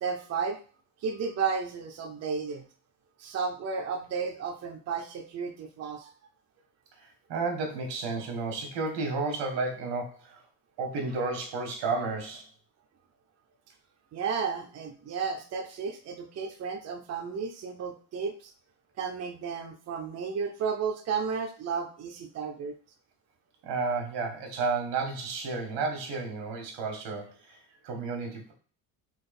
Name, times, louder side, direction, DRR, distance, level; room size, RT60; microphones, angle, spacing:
voice 1, 0.0-0.6 1.0-2.6 3.2-6.1 14.1-18.5 19.0-22.7, right 5 dB, 40° right, 3 dB, 0.6 m, -33 dB
voice 2, 7.0-10.4 10.8-12.4 23.6-28.5, right 4 dB, 85° right, 3 dB, 1.6 m, -32 dB
4.0 x 3.1 x 4.1 m, 0.41 s
cardioid pair, 145°, 41 cm